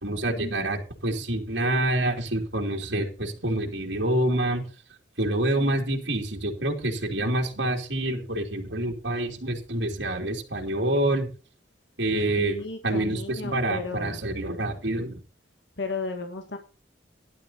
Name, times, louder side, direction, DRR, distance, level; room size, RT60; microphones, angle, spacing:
voice 1, 0.0-4.7 5.2-11.3 12.0-12.6 12.8-15.2, right 1 dB, 75° right, 0 dB, 2.7 m, -27 dB
voice 2, 12.4-14.2 15.8-16.6, left 3 dB, 70° left, 5 dB, 1.5 m, -34 dB
17.0 x 11.0 x 2.8 m, 0.36 s
head